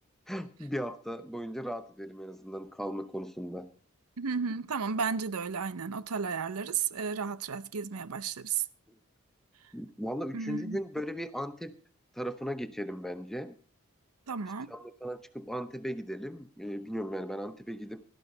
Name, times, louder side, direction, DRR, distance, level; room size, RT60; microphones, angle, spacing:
voice 1, 0.3-3.7 8.9-9.0 9.7-11.8 12.1-13.6 14.7-18.0, equal, ahead, 0.8 m, -37 dB
voice 2, 4.2-8.6 10.3-10.8 14.3-14.7, right 6 dB, 85° right, 0.7 m, -33 dB
17.5 x 13.0 x 3.9 m
head